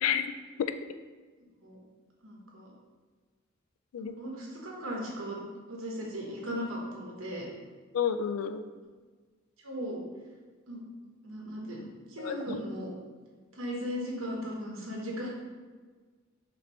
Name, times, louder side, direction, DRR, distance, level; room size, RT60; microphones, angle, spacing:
voice 1, 0.0-0.7 3.9-4.1 7.9-8.6 12.2-12.6, left 8 dB, 90° left, 10 dB, 0.3 m, -30 dB
voice 2, 2.2-2.7 4.0-5.4 5.7-7.5 9.6-10.0 10.7-10.8 11.2-12.9 13.5-15.3, equal, 70° right, -2 dB, 1.1 m, -37 dB
5.1 x 3.1 x 3.1 m, 1.4 s
head